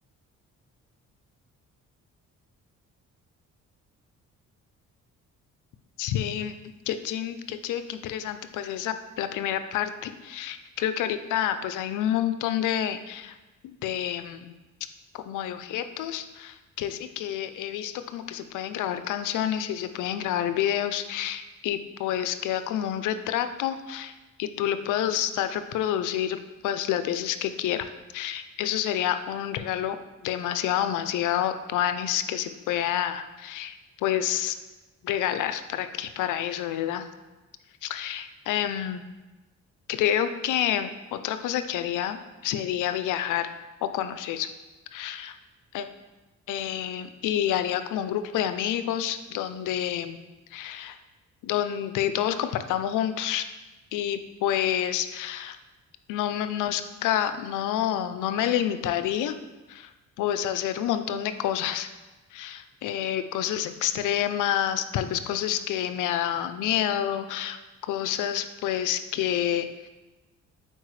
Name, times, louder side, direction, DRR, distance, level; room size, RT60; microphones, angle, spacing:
voice 1, 6.0-6.5 6.9-13.4 13.6-14.6 15.1-24.1 24.4-27.9 28.1-30.0 30.2-34.5 35.0-37.1 37.8-39.0 39.9-43.5 43.8-44.5 44.9-45.4 45.7-45.9 46.5-50.2 50.5-51.0 51.4-53.5 53.9-55.6 56.1-59.4 59.7-59.9 60.2-61.9 62.3-67.6 67.9-69.9, left 10 dB, 85° left, 10 dB, 0.6 m, -28 dB
8.8 x 4.5 x 3.2 m, 1.1 s
cardioid pair, 90°, 30 cm